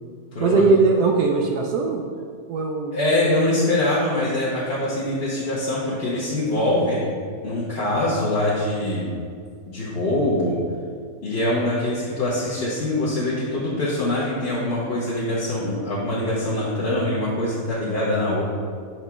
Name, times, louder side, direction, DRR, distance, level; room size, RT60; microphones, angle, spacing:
voice 1, 0.4-2.0 2.5-3.0, right 4 dB, 80° right, 1 dB, 1.1 m, -19 dB
voice 2, 2.9-7.0 7.4-9.1 9.7-10.6 11.2-18.4, left 1 dB, 45° left, -8 dB, 1.0 m, -23 dB
5.9 x 3.2 x 5.7 m, 2.1 s
omnidirectional pair, 1.7 m